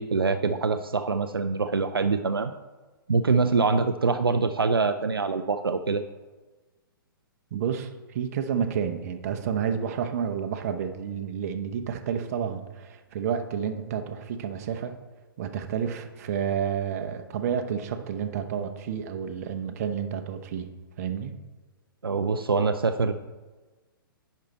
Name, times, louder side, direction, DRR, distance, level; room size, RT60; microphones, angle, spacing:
voice 1, 0.0-2.5 3.1-6.0 22.0-23.1, right 4 dB, 80° right, 9 dB, 0.5 m, -24 dB
voice 2, 7.5-15.0 15.4-20.7 21.0-21.3, right 7 dB, 40° right, 7 dB, 0.9 m, -30 dB
10.0 x 5.5 x 4.1 m, 1.2 s
figure-of-eight pair, 120°, 12 cm